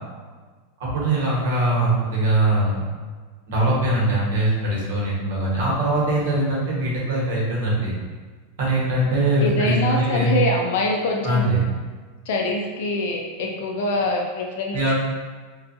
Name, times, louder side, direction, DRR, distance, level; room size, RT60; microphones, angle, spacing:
voice 1, 0.8-2.8 3.5-8.0 8.6-10.3 11.2-11.7 14.7-14.9, right 1 dB, 70° right, -5 dB, 1.0 m, -22 dB
voice 2, 9.4-11.5 12.3-14.8, left 2 dB, 60° left, 0 dB, 0.5 m, -24 dB
2.7 x 2.3 x 2.6 m, 1.4 s
supercardioid pair, 165°, 0 cm